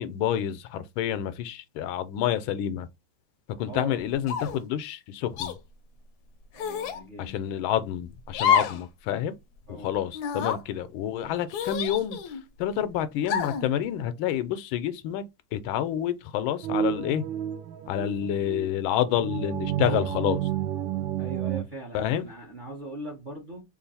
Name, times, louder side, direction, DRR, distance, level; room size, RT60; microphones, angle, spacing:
voice 1, 0.0-2.9 3.6-5.6 7.2-9.3 9.7-12.2 12.6-15.2 15.5-17.2 17.9-20.4 21.9-22.3, left 10 dB, 90° left, 1.4 m, -28 dB
voice 2, 3.7-4.0 6.5-7.6 9.7-9.9 21.2-23.6, right 1 dB, 40° right, 0.7 m, -40 dB
sound 1, 4.3-4.7 5.4-5.5 6.6-7.0 8.3-8.8 9.2-9.3 10.1-10.6 11.5-12.4 13.3-13.7, left 7 dB, 70° left, 1.0 m, -27 dB
sound 2, 16.6-21.6, right 10 dB, 75° right, 1.3 m, -30 dB
3.4 x 2.5 x 4.0 m
omnidirectional pair, 2.2 m